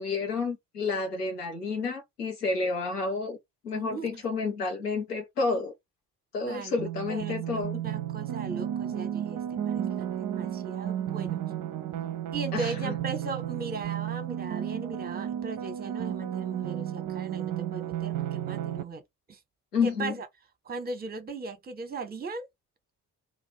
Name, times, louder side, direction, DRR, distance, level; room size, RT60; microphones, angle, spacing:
voice 1, 0.0-3.4 3.6-5.7 6.3-7.8 12.5-12.9 19.7-20.2, left 4 dB, 85° left, 1.0 m, -30 dB
voice 2, 3.7-4.2 6.4-6.8 7.1-11.4 12.3-19.0 19.3-19.4 19.8-20.3 20.7-22.5, right 3 dB, 20° right, 0.9 m, -38 dB
sound 1, 6.8-18.8, right 10 dB, 45° right, 0.6 m, -33 dB
2.5 x 2.5 x 3.3 m
figure-of-eight pair, 45°, 45 cm